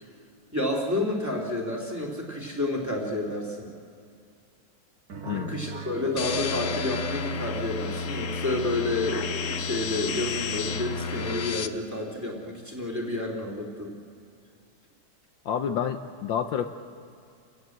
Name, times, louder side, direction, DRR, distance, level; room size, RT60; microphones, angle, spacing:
voice 1, 0.5-3.7 5.2-13.9, left 2 dB, 10° right, -1 dB, 2.8 m, -30 dB
sound 1, 5.1-8.0, right 4 dB, 50° right, 2.1 m, -42 dB
voice 2, 5.2-5.6 15.4-16.7, left 8 dB, 70° left, 7 dB, 1.5 m, -29 dB
sound 2, 6.2-11.7, left 5 dB, 55° left, 0.9 m, -31 dB
29.0 x 16.0 x 7.9 m, 2.5 s
omnidirectional pair, 2.2 m